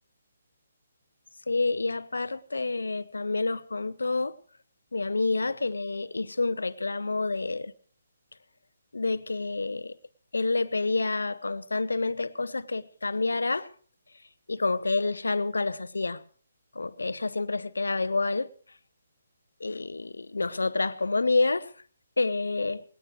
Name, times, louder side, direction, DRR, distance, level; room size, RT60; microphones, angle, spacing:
voice 1, 1.5-4.4 4.9-7.7 8.9-10.0 10.3-13.7 14.5-16.2 16.7-18.5 19.6-21.7 22.2-22.8, left 3 dB, 75° left, 0.8 m, -28 dB
20.5 x 18.0 x 3.2 m
figure-of-eight pair, 140°, 0 cm